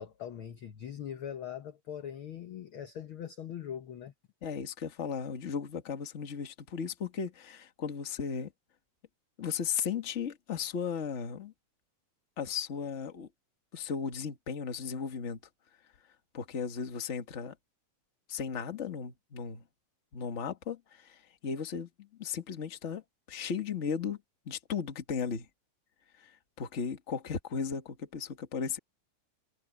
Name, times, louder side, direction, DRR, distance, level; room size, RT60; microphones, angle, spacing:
voice 1, 0.0-4.1, left 9 dB, 70° left, 1.2 m, -41 dB
voice 2, 4.4-8.5 9.4-11.5 12.4-13.3 13.7-15.4 16.3-17.5 18.3-19.6 20.1-23.0 23.3-25.5 26.2-28.8, left 6 dB, 35° left, 1.1 m, -36 dB
omnidirectional pair, 3.8 m